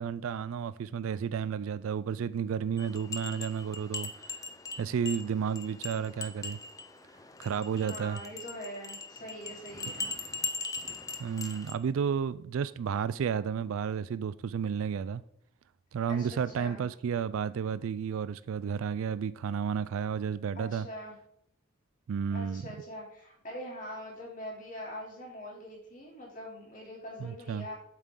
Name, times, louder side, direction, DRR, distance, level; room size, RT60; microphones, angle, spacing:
voice 1, 0.0-4.4 4.8-6.6 7.4-8.2 11.2-15.2 15.9-20.9 22.1-22.6 27.2-27.7, right 7 dB, 75° right, 0.3 m, -32 dB
sound 1, 2.8-11.7, left 3 dB, 15° left, 0.5 m, -40 dB
voice 2, 7.9-10.1 16.1-16.8 20.5-21.1 22.3-27.7, equal, 40° left, 3.0 m, -43 dB
8.3 x 7.5 x 3.7 m
head